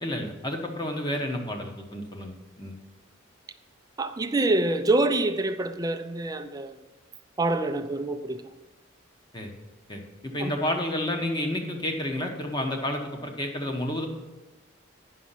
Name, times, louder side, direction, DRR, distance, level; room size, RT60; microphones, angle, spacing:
voice 1, 0.0-2.8 9.3-9.5 9.9-14.1, left 1 dB, 20° left, 1.1 m, -30 dB
voice 2, 4.0-6.7 7.4-8.4 10.4-10.5, right 2 dB, 20° right, 0.4 m, -26 dB
9.4 x 6.3 x 5.7 m
head